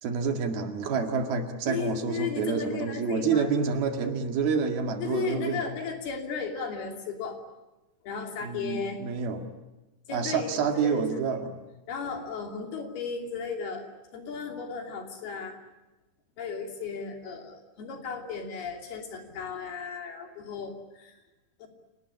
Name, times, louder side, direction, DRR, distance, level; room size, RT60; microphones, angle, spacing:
voice 1, 0.0-5.6 8.4-9.4 10.1-11.6, right 5 dB, 80° right, 5 dB, 4.0 m, -28 dB
voice 2, 1.7-3.5 5.0-7.4 8.0-9.0 10.1-11.4 11.9-13.9 14.1-15.6 16.4-21.2 21.6-21.7, left 6 dB, 90° left, 3 dB, 5.0 m, -35 dB
28.5 x 19.0 x 9.8 m, 1.1 s
omnidirectional pair, 4.3 m